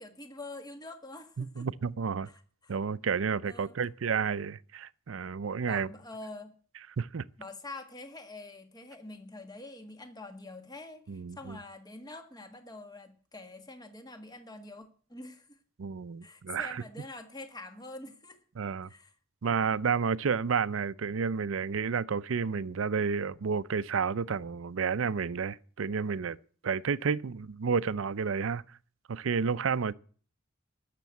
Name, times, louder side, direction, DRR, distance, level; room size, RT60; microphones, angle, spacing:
voice 1, 0.0-1.7 2.3-2.7 3.5-3.7 5.6-6.6 7.4-15.6 16.2-18.4 18.9-19.1, left 2 dB, 20° left, 1.6 m, -46 dB
voice 2, 1.4-2.3 2.7-5.9 7.0-7.2 11.1-11.6 15.8-16.8 18.6-18.9 19.4-26.4 26.6-28.6 29.1-29.9, right 6 dB, 70° right, 0.5 m, -31 dB
13.5 x 6.8 x 9.3 m
head